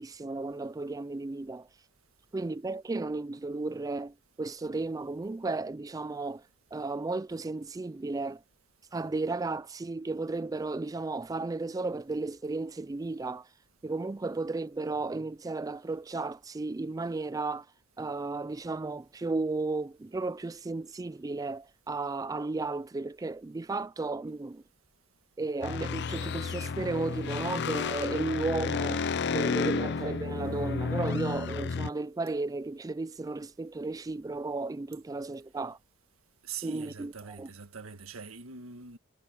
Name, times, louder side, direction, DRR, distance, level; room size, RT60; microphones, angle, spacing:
voice 1, 0.0-1.7 2.3-6.4 6.7-8.4 8.9-13.5 13.8-17.7 18.0-24.6 25.4-29.1 29.3-35.8 36.6-37.5, right 3 dB, 15° right, 0.3 m, -34 dB
sound 1, 25.6-31.9, left 5 dB, 55° left, 0.5 m, -31 dB
voice 2, 36.4-39.0, right 6 dB, 85° right, 1.7 m, -43 dB
head